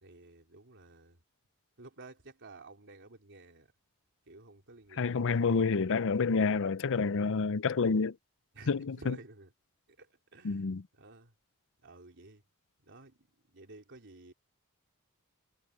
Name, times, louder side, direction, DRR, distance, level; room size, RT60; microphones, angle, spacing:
voice 1, 0.0-1.2 1.8-3.7 4.3-5.7 8.5-9.5 10.0-10.7 11.0-11.3 11.8-12.4 12.9-13.2 13.5-14.3, right 2 dB, 55° right, 3.4 m, -53 dB
voice 2, 5.0-8.1 8.7-9.2 10.4-10.8, left 4 dB, 60° left, 0.6 m, -28 dB
head